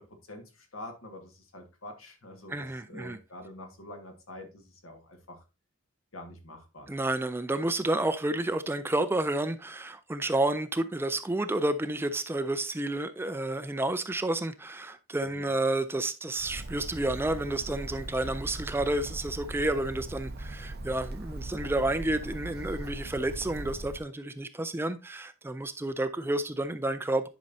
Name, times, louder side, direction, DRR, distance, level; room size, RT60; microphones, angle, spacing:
voice 1, 0.0-5.4 6.1-7.0 15.2-15.5, left 1 dB, 75° left, 1.7 m, -46 dB
voice 2, 2.5-3.2 6.9-27.3, right 2 dB, 10° right, 0.3 m, -30 dB
Bird, 16.4-24.0, right 1 dB, 50° right, 0.8 m, -40 dB
10.5 x 5.3 x 2.7 m
head